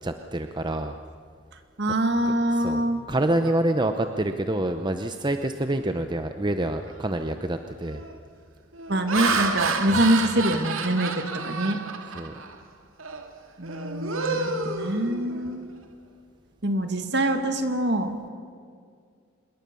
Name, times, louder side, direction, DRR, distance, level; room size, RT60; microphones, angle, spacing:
voice 1, 0.0-1.0 2.6-2.8 3.1-8.0 12.2-12.3, right 1 dB, 20° right, 7 dB, 0.8 m, -27 dB
voice 2, 1.8-3.0 8.9-11.1 11.4-11.8 13.6-15.7 16.6-18.3, right 1 dB, 55° right, 6 dB, 2.3 m, -25 dB
Laughter, 7.0-7.3 7.8-8.1 8.7-12.6 13.0-13.2 13.6-15.6, right 4 dB, 85° right, 2.2 m, -29 dB
26.5 x 22.0 x 7.0 m, 2.2 s
head